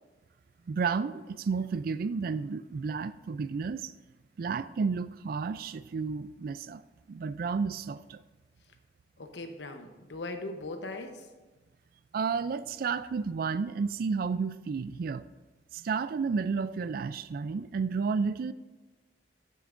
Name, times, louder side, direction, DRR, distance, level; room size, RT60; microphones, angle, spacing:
voice 1, 0.7-3.9 4.4-6.8 7.1-8.2 12.1-15.2 15.7-18.5, right 5 dB, 55° right, 15 dB, 0.3 m, -31 dB
voice 2, 9.2-11.3, left 2 dB, 85° left, 6 dB, 0.9 m, -39 dB
14.0 x 6.8 x 2.6 m, 1.2 s
head